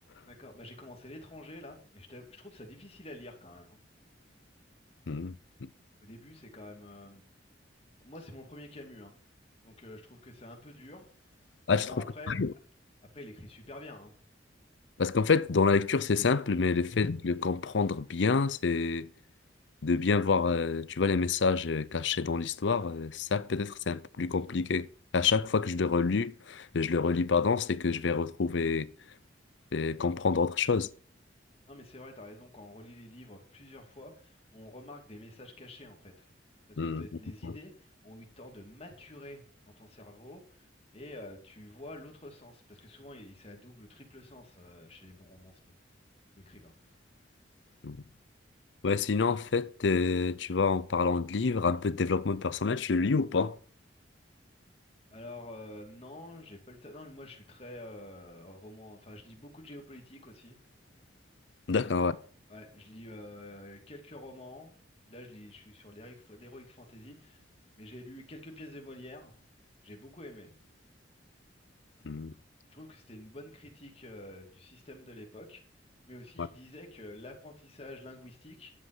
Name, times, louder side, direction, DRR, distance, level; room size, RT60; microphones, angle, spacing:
voice 1, 0.3-3.8 6.0-7.2 8.0-9.1 9.6-11.1 11.7-12.4 13.1-14.1 31.7-36.2 36.8-40.7 40.9-45.6 46.3-46.7 55.1-60.6 61.8-62.1 62.5-64.7 65.1-67.4 67.8-69.3 69.8-70.5 72.7-75.6 76.1-78.7, left 1 dB, 35° left, 2.8 m, -48 dB
voice 2, 15.0-19.1 19.8-24.9 25.1-28.9 29.7-30.9 36.8-37.1 37.4-37.5 47.8-48.0 48.8-53.6 61.7-62.2 72.0-72.3 76.4-76.5, left 4 dB, 75° left, 0.6 m, -28 dB
11.0 x 7.8 x 6.1 m
head